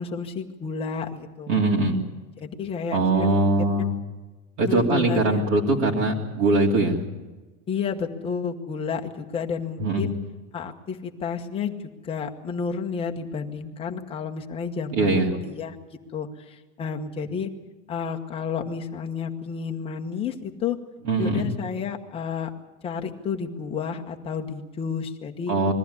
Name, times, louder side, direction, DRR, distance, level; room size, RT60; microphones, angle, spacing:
voice 1, 0.0-1.5 2.4-3.3 4.7-5.4 7.7-10.1 10.5-15.8 16.1-17.5 17.9-20.8 21.2-22.5 22.8-25.6, left 6 dB, 10° left, 3 dB, 1.1 m, -31 dB
voice 2, 1.5-2.0 2.9-4.0 4.6-7.0 9.8-10.1 14.9-15.3 21.0-21.6 25.5-25.7, right 2 dB, 50° right, -2 dB, 3.0 m, -22 dB
21.5 x 15.0 x 9.6 m, 1.2 s
supercardioid pair, 170°, 45 cm